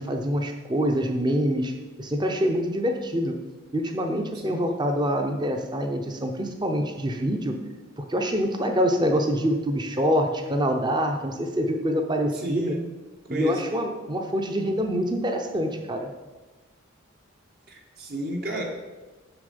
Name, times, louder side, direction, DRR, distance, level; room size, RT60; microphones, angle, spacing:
voice 1, 0.0-3.4 3.7-7.6 8.0-12.8 13.3-16.1, equal, 20° right, 4 dB, 0.7 m, -25 dB
voice 2, 12.3-12.8 13.3-13.7 17.7-18.6, right 1 dB, 45° right, 1 dB, 1.1 m, -32 dB
7.0 x 6.5 x 5.3 m, 1.2 s
head